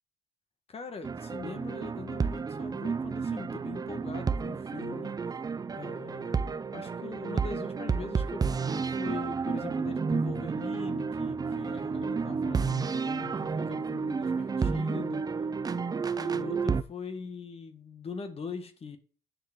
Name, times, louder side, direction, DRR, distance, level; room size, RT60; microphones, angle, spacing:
voice 1, 0.7-5.2 5.7-15.3 16.2-19.0, left 5 dB, 35° left, 1.8 m, -42 dB
sound 1, 1.0-16.8, right 5 dB, 20° right, 0.6 m, -31 dB
9.9 x 4.8 x 7.6 m
cardioid pair, 110°, 17 cm